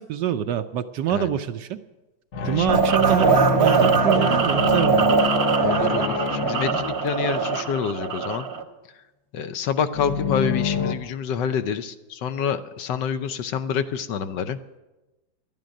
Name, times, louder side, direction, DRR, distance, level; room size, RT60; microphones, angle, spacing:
voice 1, 0.0-1.8 2.4-5.2, right 10 dB, 70° right, 10 dB, 1.2 m, -26 dB
sound 1, 2.3-7.8 9.9-11.0, left 5 dB, 50° left, 1.0 m, -27 dB
voice 2, 2.4-2.8 5.6-8.4 9.3-14.6, left 7 dB, 70° left, 10 dB, 1.3 m, -27 dB
sound 2, 2.7-8.6, right 5 dB, 40° right, 1.1 m, -21 dB
11.5 x 9.1 x 9.8 m, 1.1 s
omnidirectional pair, 2.1 m